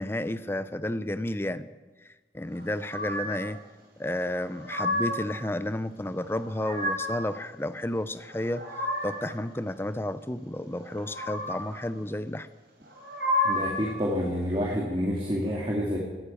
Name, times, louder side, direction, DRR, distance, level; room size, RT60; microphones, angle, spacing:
voice 1, 0.0-1.7 2.0-3.6 4.0-8.6 9.0-12.5, left 1 dB, 15° left, 14 dB, 0.5 m, -32 dB
sound 1, 2.9-3.5 4.3-5.3 6.3-7.3 8.2-9.3 10.9-11.7 12.9-13.9, left 1 dB, 70° right, 3.8 m, -31 dB
voice 2, 13.4-16.0, equal, 30° right, -2 dB, 2.1 m, -28 dB
14.0 x 9.5 x 8.9 m, 1.3 s
head